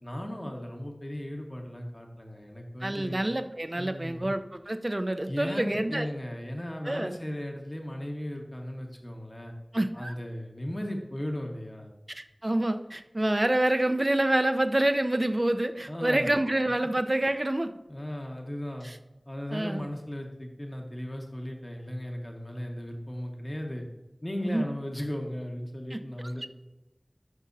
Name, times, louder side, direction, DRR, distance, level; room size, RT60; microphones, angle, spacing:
voice 1, 0.0-3.2 3.8-4.2 5.3-9.5 9.9-11.9 15.9-16.3 17.9-18.9 19.3-23.8 24.2-26.5, left 1 dB, 35° left, 1 dB, 1.5 m, -36 dB
voice 2, 2.8-6.1 6.8-7.1 9.7-10.1 12.1-17.7 18.8-19.0 19.5-19.8 24.4-24.6 25.9-26.0, right 1 dB, 40° right, 8 dB, 0.6 m, -27 dB
13.0 x 6.2 x 2.7 m, 1.0 s
wide cardioid pair, 40°, 0 cm